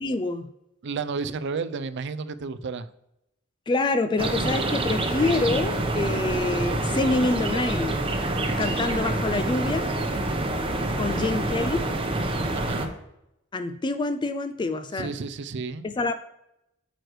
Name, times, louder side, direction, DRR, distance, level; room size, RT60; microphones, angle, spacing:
voice 1, 0.0-0.5 3.7-8.1 8.6-9.9 11.0-11.8 13.5-15.1 15.8-16.1, left 2 dB, 20° left, 9 dB, 0.3 m, -26 dB
voice 2, 0.8-2.9 11.0-11.4 12.5-12.9 14.9-15.9, right 4 dB, 55° right, 14 dB, 0.4 m, -32 dB
sound 1, 4.2-12.9, right 2 dB, 25° right, 0.8 m, -27 dB
9.1 x 6.3 x 3.1 m, 0.85 s
head